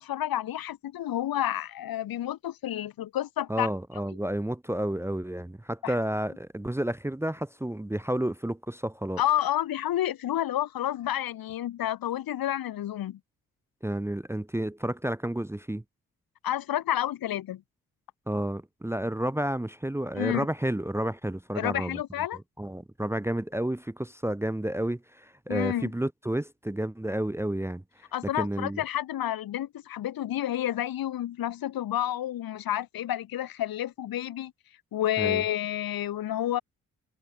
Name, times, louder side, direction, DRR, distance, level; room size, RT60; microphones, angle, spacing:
voice 1, 0.0-3.7 5.8-5.9 9.2-13.2 16.4-17.6 20.1-20.5 21.6-22.4 25.5-25.9 28.1-34.5 34.9-36.6, left 12 dB, 70° left, 2.1 m, -30 dB
voice 2, 3.5-9.2 13.8-15.8 18.3-22.0 22.6-27.8 28.4-28.8 35.2-35.4, right 1 dB, 5° right, 0.8 m, -31 dB
hypercardioid pair, 40°, 36 cm